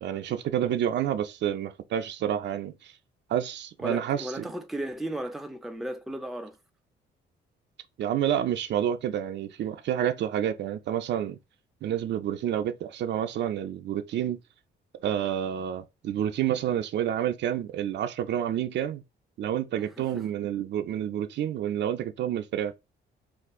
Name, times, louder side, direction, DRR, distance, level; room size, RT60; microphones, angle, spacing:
voice 1, 0.0-2.9 3.3-4.5 8.0-11.4 11.8-14.4 15.0-19.0 19.4-22.7, right 10 dB, 65° right, 0.4 m, -29 dB
voice 2, 3.8-6.6 19.8-20.3, right 1 dB, ahead, 0.4 m, -35 dB
2.4 x 2.3 x 3.5 m
cardioid pair, 90°, 20 cm